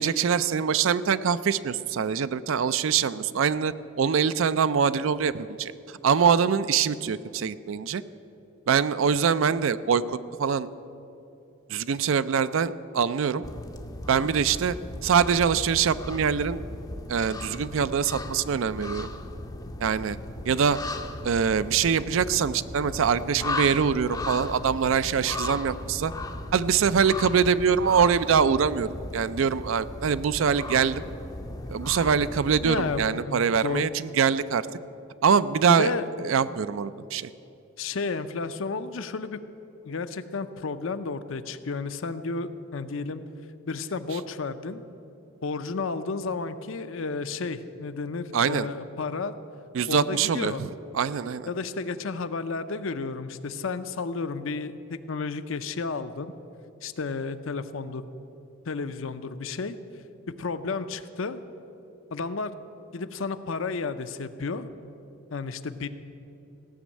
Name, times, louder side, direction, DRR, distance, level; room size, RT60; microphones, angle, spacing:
voice 1, 0.0-5.7 6.0-8.0 8.7-10.7 11.7-13.4 14.1-14.8 15.0-16.6 17.1-19.1 19.8-20.2 20.5-20.8 21.2-26.1 26.5-31.0 31.7-34.6 35.2-35.9 36.2-37.3 48.3-48.7 49.7-50.7 50.9-51.5, right 6 dB, 65° right, 15 dB, 0.4 m, -24 dB
sound 1, 13.4-33.1, left 2 dB, 15° left, 0.5 m, -37 dB
voice 2, 32.6-33.9 35.7-36.0 37.8-39.4 39.8-43.2 43.7-44.8 45.4-49.3 49.9-50.6 51.5-56.3 56.8-58.1 58.7-59.8 60.3-61.4 62.1-62.6 62.9-64.7 65.3-65.9, left 4 dB, 65° left, 11 dB, 0.6 m, -32 dB
16.5 x 6.2 x 8.5 m, 2.9 s
head